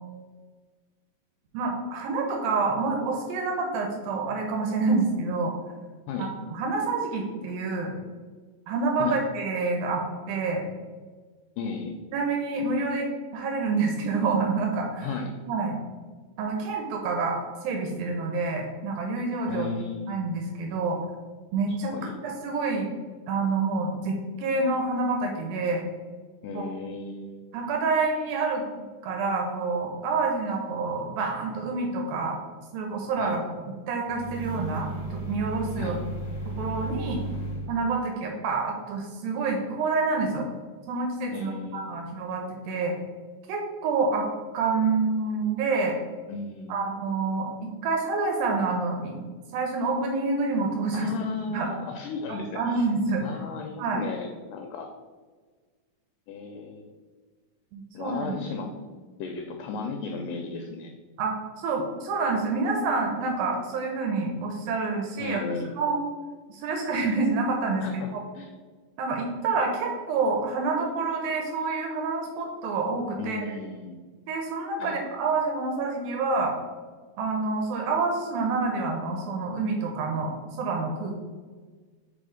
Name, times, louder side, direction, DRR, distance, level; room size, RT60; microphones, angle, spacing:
voice 1, 1.5-5.5 6.5-7.9 8.7-10.6 12.1-15.1 15.5-15.8 16.4-19.7 20.1-21.0 21.5-22.9 23.3-25.8 26.5-26.6 27.5-32.4 32.7-33.4 33.9-36.0 36.6-37.2 37.7-40.5 40.9-42.9 43.5-44.3 44.5-46.0 46.7-49.2 49.5-51.1 51.5-51.7 52.6-53.2 53.8-54.0 57.7-58.4 61.2-65.4 65.8-66.0 66.5-68.0 69.0-73.4 74.3-76.5 77.2-81.2, right 3 dB, 85° right, 2 dB, 2.5 m, -27 dB
voice 2, 11.6-12.0 15.0-15.4 19.5-20.1 21.9-22.2 26.4-27.4 33.2-33.4 35.8-36.0 41.3-42.1 46.3-46.8 50.9-52.8 53.2-54.9 56.3-56.9 57.9-58.7 59.2-60.9 65.2-65.7 67.8-68.1 68.3-68.5 73.2-74.0 74.8-74.9, left 4 dB, 80° left, 4 dB, 2.0 m, -35 dB
sound 1, 34.0-37.7, right 2 dB, 55° left, 1.8 m, -34 dB
4.9 x 4.4 x 5.0 m, 1.4 s
omnidirectional pair, 4.1 m